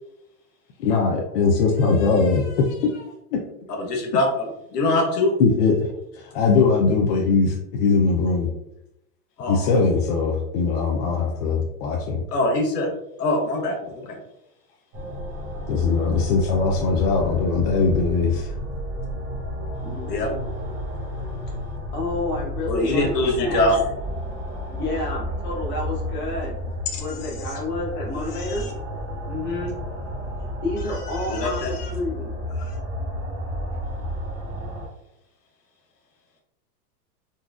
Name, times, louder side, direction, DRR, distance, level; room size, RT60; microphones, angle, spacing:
voice 1, 0.8-3.4 5.4-5.9 6.1-8.5 9.5-12.2 15.7-18.5 27.2-27.5 28.3-28.7 31.1-31.9 32.6-32.8, left 4 dB, 45° left, 0 dB, 0.5 m, -21 dB
voice 2, 3.8-5.3 9.4-9.6 12.3-12.9 13.2-14.2 20.1-20.3 22.7-23.8 31.3-31.7, left 2 dB, 85° left, 2 dB, 1.1 m, -23 dB
sound 1, 14.9-34.9, equal, 40° right, 1.3 m, -32 dB
voice 3, 19.8-20.4 21.9-23.6 24.7-26.5 27.0-28.7 29.3-29.8 30.6-32.3, left 2 dB, 20° left, -3 dB, 0.9 m, -30 dB
3.9 x 2.3 x 2.3 m, 0.80 s
hypercardioid pair, 140°, 47 cm